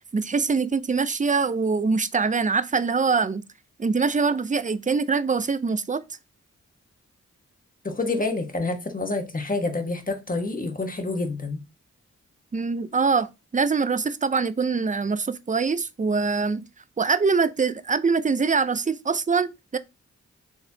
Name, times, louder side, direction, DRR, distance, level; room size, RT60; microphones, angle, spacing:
voice 1, 0.1-3.4 3.8-6.0 12.5-16.7 17.0-19.8, right 4 dB, 25° right, 0.5 m, -24 dB
voice 2, 7.8-11.6, left 3 dB, 30° left, 1.2 m, -28 dB
4.6 x 3.2 x 2.7 m
cardioid pair, 40°, 29 cm